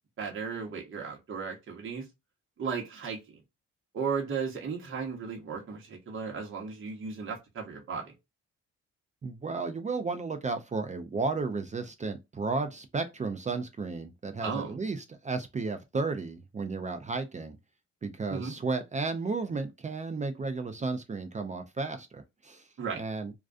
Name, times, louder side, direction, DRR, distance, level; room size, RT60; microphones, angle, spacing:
voice 1, 0.2-2.0 2.6-3.4 3.9-8.1 14.4-14.8 18.3-18.5 22.8-23.0, right 5 dB, 40° right, 0.9 m, -35 dB
voice 2, 9.2-17.6 18.0-22.7 23.0-23.3, right 3 dB, 25° right, 0.4 m, -33 dB
2.3 x 2.3 x 2.4 m
cardioid pair, 90°, 30 cm